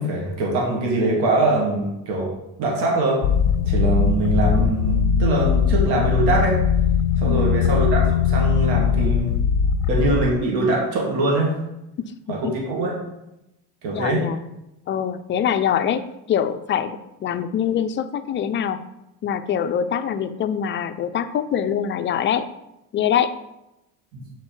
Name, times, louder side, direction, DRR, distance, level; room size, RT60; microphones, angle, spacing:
voice 1, 0.0-2.3 2.6-3.2 3.7-6.6 7.2-9.4 9.9-11.6 12.3-12.9 13.8-14.3 24.1-24.2, right 2 dB, 75° right, -2 dB, 1.9 m, -23 dB
sound 1, 3.2-10.3, left 7 dB, 70° left, 0.6 m, -20 dB
voice 2, 7.2-7.7 12.0-12.5 13.9-14.4 14.9-18.8 19.2-22.5 22.9-23.3, left 8 dB, 30° left, 10 dB, 0.4 m, -24 dB
7.1 x 4.3 x 4.5 m, 0.91 s
cardioid pair, 120°, 40 cm